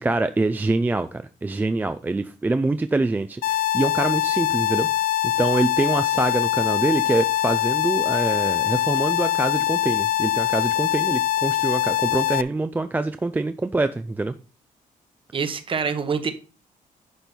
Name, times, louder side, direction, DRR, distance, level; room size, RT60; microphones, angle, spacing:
voice 1, 0.0-4.9 5.4-14.3, right 2 dB, 10° right, 10 dB, 0.4 m, -25 dB
sound 1, 3.4-12.4, left 13 dB, 90° left, 0.4 m, -23 dB
voice 2, 15.3-16.3, right 6 dB, 35° right, 10 dB, 1.2 m, -25 dB
10.5 x 5.3 x 4.3 m, 0.35 s
cardioid pair, 145°, 14 cm